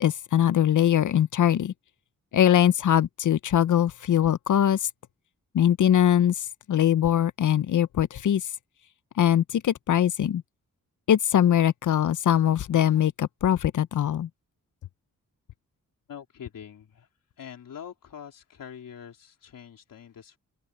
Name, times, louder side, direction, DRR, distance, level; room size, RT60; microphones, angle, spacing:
voice 1, 0.0-1.7 2.3-4.9 5.5-8.5 9.2-10.4 11.1-14.3, left 10 dB, 65° left, 0.6 m, -22 dB
voice 2, 16.1-17.1 17.4-20.4, left 8 dB, 85° left, 3.6 m, -44 dB
open air
cardioid pair, 80°, 32 cm